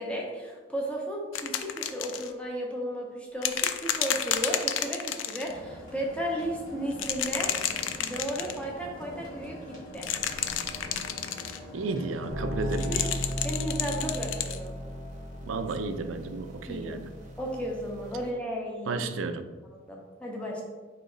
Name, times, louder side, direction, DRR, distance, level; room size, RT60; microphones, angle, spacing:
voice 1, 0.0-10.1 12.9-13.1 13.4-14.7 16.7-17.0 17.4-19.1 19.9-20.6, equal, 5° left, -1 dB, 0.6 m, -34 dB
sound 1, 1.3-2.3 3.4-5.5 6.9-8.6 9.9-11.6 12.7-14.6 15.7-15.8, left 9 dB, 80° left, 0.3 m, -31 dB
sound 2, 5.4-12.3, equal, 45° left, 1.5 m, -44 dB
voice 2, 11.7-13.1 15.4-17.1 18.9-19.5, right 3 dB, 85° right, 9 dB, 0.4 m, -33 dB
sound 3, 12.3-18.3, equal, 40° right, 0.7 m, -36 dB
4.7 x 3.0 x 3.8 m, 1.3 s
head